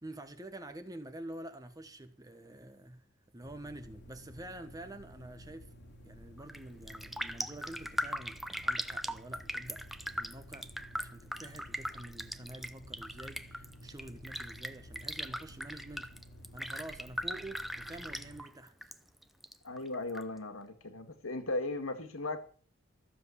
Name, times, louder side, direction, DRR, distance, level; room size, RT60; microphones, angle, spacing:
voice 1, 0.0-3.1 3.3-5.7 6.0-9.8 10.2-10.7 10.9-16.1 16.5-18.7, right 1 dB, 15° right, 1.3 m, -48 dB
sound 1, 3.4-18.4, equal, 55° left, 2.6 m, -53 dB
Raindrop, 6.4-6.6 6.9-18.9 19.2-20.2 20.6-20.7, equal, ahead, 0.7 m, -39 dB
voice 2, 19.6-22.4, left 2 dB, 80° left, 1.9 m, -37 dB
14.5 x 7.6 x 8.4 m
head